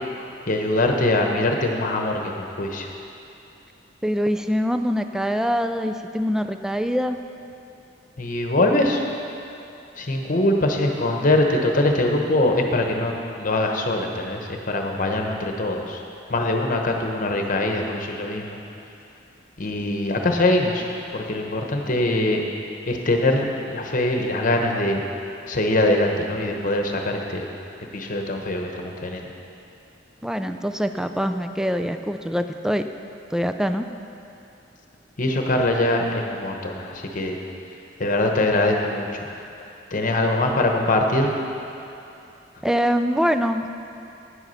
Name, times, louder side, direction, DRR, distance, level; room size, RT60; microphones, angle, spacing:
voice 1, 0.5-2.9 8.2-9.0 10.0-16.0 16.3-18.6 19.6-20.9 21.1-22.4 22.9-25.0 25.5-27.5 27.9-29.3 35.2-37.4 38.0-39.3 39.9-41.3, left 1 dB, 45° left, 2 dB, 1.0 m, -23 dB
voice 2, 4.0-7.2 30.2-32.9 33.3-33.8 42.6-43.8, equal, 5° right, 8 dB, 0.3 m, -24 dB
10.0 x 8.0 x 5.7 m, 2.8 s
head